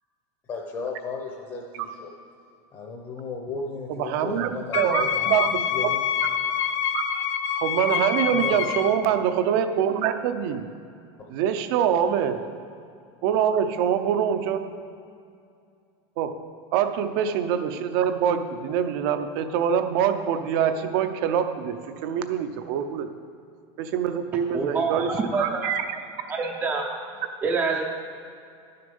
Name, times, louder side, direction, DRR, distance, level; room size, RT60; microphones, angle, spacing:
voice 1, 0.5-2.1 2.7-5.4 5.7-6.0 8.3-8.6, left 4 dB, 25° left, 0 dB, 0.9 m, -34 dB
voice 2, 3.9-5.6 6.9-7.0 7.6-10.6 11.3-12.5 13.2-14.6 16.2-16.4 16.7-23.1 23.8-25.1 25.4-25.8, right 8 dB, 50° right, 8 dB, 0.7 m, -24 dB
Wind instrument woodwind instrument, 4.7-9.0, left 8 dB, 90° left, 0.7 m, -26 dB
voice 3, 24.5-25.7 26.4-26.8 27.4-27.8, right 4 dB, 15° right, -1 dB, 0.6 m, -26 dB
11.5 x 6.7 x 5.4 m, 2.4 s
supercardioid pair, 165°, 15 cm